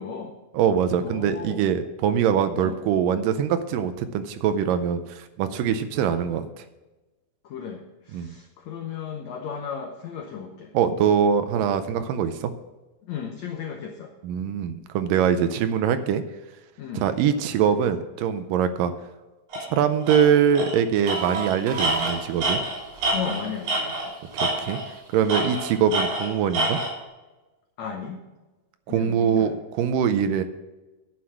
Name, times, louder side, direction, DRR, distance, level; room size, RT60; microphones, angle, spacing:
voice 1, 0.0-0.4 1.0-1.7 2.5-2.8 7.4-10.7 13.0-14.1 16.8-17.0 23.1-24.1 27.8-28.2 28.9-29.6, left 7 dB, 75° left, 2 dB, 1.7 m, -35 dB
voice 2, 0.5-6.5 8.1-8.3 10.7-12.5 14.2-16.2 16.9-18.9 19.7-22.6 24.6-24.8 25.1-26.8 28.9-30.4, right 8 dB, 80° right, 10 dB, 2.0 m, -23 dB
Tools, 19.5-19.7 20.1-20.2 20.6-20.8 21.1-24.1 24.4-24.9 25.3-26.9, right 1 dB, 60° right, 5.1 m, -26 dB
sound 1, 21.1-25.9, right 6 dB, 40° right, 1.2 m, -40 dB
10.0 x 7.6 x 6.2 m, 1.1 s
omnidirectional pair, 4.5 m